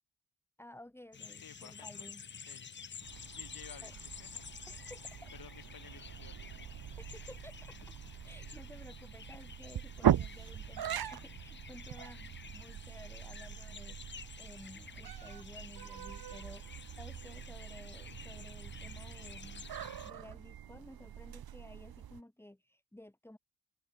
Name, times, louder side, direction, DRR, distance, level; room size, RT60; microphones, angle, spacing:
voice 1, 0.6-2.2 3.8-3.9 4.7-5.3 7.0-7.8 8.2-19.7 20.0-23.4, left 1 dB, 5° left, 2.3 m, -54 dB
sound 1, 1.1-20.1, left 6 dB, 25° left, 0.7 m, -51 dB
voice 2, 1.4-2.1 2.4-2.9 3.3-4.8 5.3-6.7 16.7-16.8, left 8 dB, 60° left, 2.4 m, -55 dB
sound 2, 3.0-22.2, right 10 dB, 60° right, 1.4 m, -40 dB
open air
cardioid pair, 70°, 40 cm